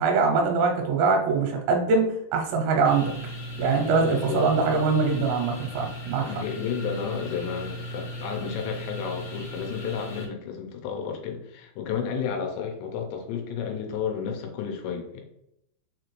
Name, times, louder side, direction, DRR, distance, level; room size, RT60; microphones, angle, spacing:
voice 1, 0.0-3.1 3.6-6.3, right 4 dB, 85° right, 2 dB, 2.9 m, -23 dB
sound 1, 2.8-10.3, equal, 65° left, 2.5 m, -37 dB
voice 2, 3.9-4.5 6.2-15.2, left 7 dB, 90° left, 2 dB, 2.9 m, -32 dB
6.4 x 2.5 x 3.1 m, 0.79 s
omnidirectional pair, 5.0 m